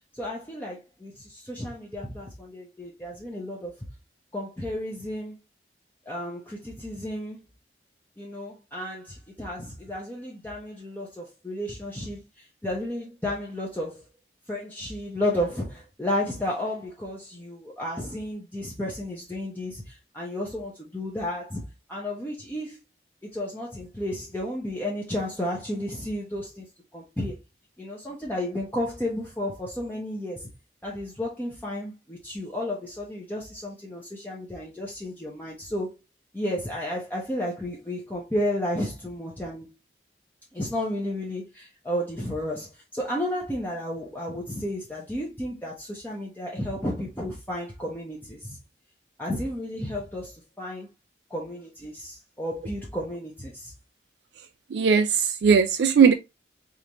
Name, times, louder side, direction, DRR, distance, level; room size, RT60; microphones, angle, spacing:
voice 1, 0.1-3.7 4.3-5.3 6.1-7.4 8.2-12.2 12.6-14.1 14.5-22.8 23.3-26.7 26.9-27.4 27.8-30.5 30.8-36.0 36.3-39.7 40.5-48.6 49.2-50.9 51.3-53.7, left 1 dB, 10° left, 0.8 m, -32 dB
voice 2, 54.7-56.1, right 6 dB, 75° right, 0.3 m, -19 dB
4.9 x 2.6 x 2.9 m
head